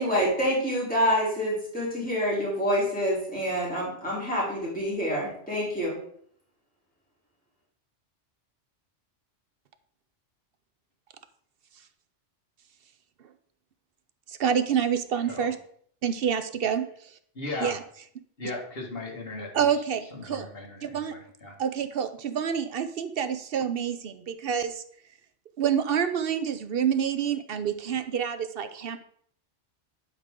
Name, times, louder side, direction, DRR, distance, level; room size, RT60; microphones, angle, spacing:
voice 1, 0.0-6.0, equal, 5° left, -7 dB, 3.6 m, -27 dB
voice 2, 14.3-15.6 16.0-16.9 17.6-17.8 19.5-20.5 20.8-21.2 21.6-24.8 25.6-29.0, right 8 dB, 60° right, 10 dB, 0.7 m, -27 dB
voice 3, 17.4-17.8 18.4-19.7 20.1-21.6, left 2 dB, 55° left, 0 dB, 2.0 m, -37 dB
11.5 x 4.9 x 3.7 m, 0.62 s
omnidirectional pair, 1.2 m